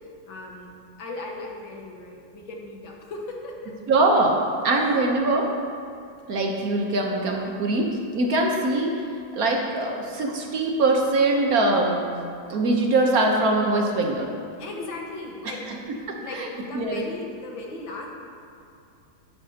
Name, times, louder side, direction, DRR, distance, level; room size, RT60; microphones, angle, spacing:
voice 1, 0.3-0.7 1.0-3.7 4.7-4.9 14.6-18.1, left 2 dB, 85° left, 0 dB, 2.1 m, -37 dB
voice 2, 3.9-5.5 6.3-9.0 9.3-12.1 12.5-14.3 15.4-15.5 16.3-17.0, right 2 dB, 55° right, 1 dB, 1.2 m, -22 dB
12.0 x 11.5 x 2.8 m, 2.5 s
omnidirectional pair, 2.1 m